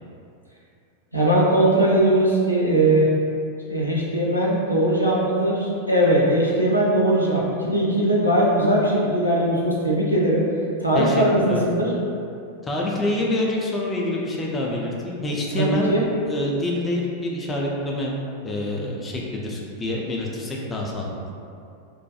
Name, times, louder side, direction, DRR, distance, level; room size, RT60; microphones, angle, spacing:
voice 1, 1.1-3.1 3.7-10.4 10.8-11.9 15.6-16.0, right 1 dB, 85° left, -5 dB, 0.4 m, -20 dB
voice 2, 10.9-11.7 12.6-15.9 16.2-18.1 18.4-21.1, left 1 dB, 15° left, -3 dB, 0.3 m, -26 dB
2.3 x 2.2 x 2.6 m, 2.5 s
figure-of-eight pair, 90°, 0 cm